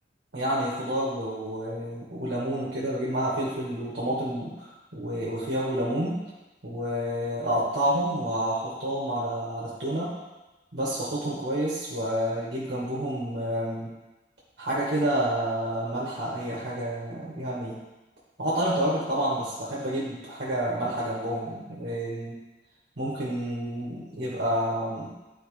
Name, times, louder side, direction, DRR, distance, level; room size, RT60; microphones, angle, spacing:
voice 1, 0.3-6.2 6.6-10.1 10.7-13.9 14.6-17.8 18.4-22.4 23.0-25.1, right 1 dB, 70° right, -6 dB, 1.6 m, -29 dB
11.5 x 4.5 x 3.3 m, 1.1 s
head